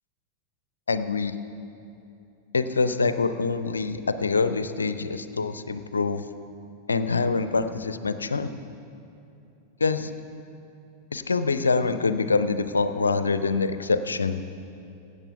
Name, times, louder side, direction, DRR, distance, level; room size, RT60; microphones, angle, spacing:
voice 1, 0.9-1.3 2.5-6.3 6.9-8.5 9.8-10.1 11.1-14.4, left 4 dB, 75° left, 12 dB, 0.5 m, -25 dB
16.0 x 8.5 x 5.6 m, 2.7 s
figure-of-eight pair, 90°, 0 cm